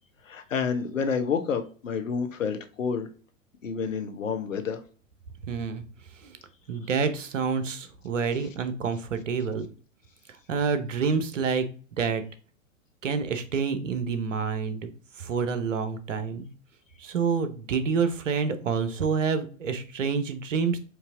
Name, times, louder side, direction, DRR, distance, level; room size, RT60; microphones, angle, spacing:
voice 1, 0.3-3.1 3.6-4.8, left 6 dB, 75° left, 0.9 m, -29 dB
voice 2, 5.5-5.8 6.2-6.4 6.7-9.7 10.5-11.6 12.0-12.2 13.0-14.9 15.2-16.5 17.0-20.8, right 5 dB, 70° right, 0.9 m, -28 dB
4.7 x 2.7 x 3.7 m
figure-of-eight pair, 100°, 40 cm